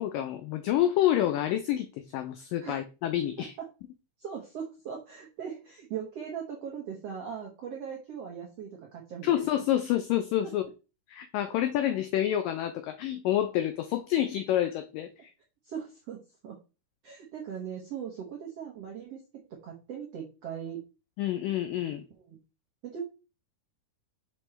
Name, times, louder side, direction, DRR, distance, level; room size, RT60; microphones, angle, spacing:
voice 1, 0.0-1.9 2.1-3.5 9.2-10.7 11.1-15.1 21.2-22.0, left 12 dB, 90° left, 1.9 m, -28 dB
voice 2, 3.4-3.7 4.2-9.5 10.4-10.5 15.6-16.6 17.0-19.2 19.5-20.8 22.3-22.4 22.8-23.0, right 8 dB, 80° right, 1.4 m, -39 dB
6.2 x 6.0 x 3.2 m
omnidirectional pair, 4.6 m